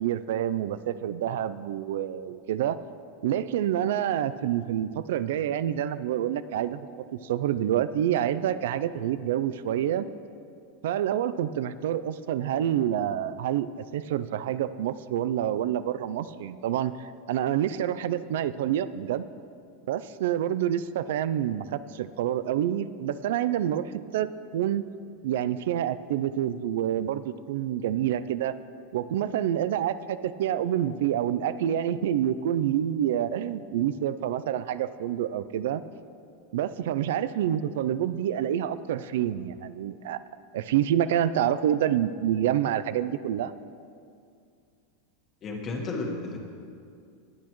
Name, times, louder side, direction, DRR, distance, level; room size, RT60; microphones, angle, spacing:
voice 1, 0.0-2.8 3.2-6.9 7.2-10.1 10.8-19.2 19.9-24.9 25.2-28.5 28.9-35.8 36.5-40.2 40.5-43.5, right 10 dB, 75° right, 14 dB, 0.4 m, -27 dB
voice 2, 45.4-46.4, left 3 dB, 25° left, 1 dB, 1.4 m, -32 dB
20.0 x 8.5 x 3.1 m, 2.4 s
supercardioid pair, 160°, 0 cm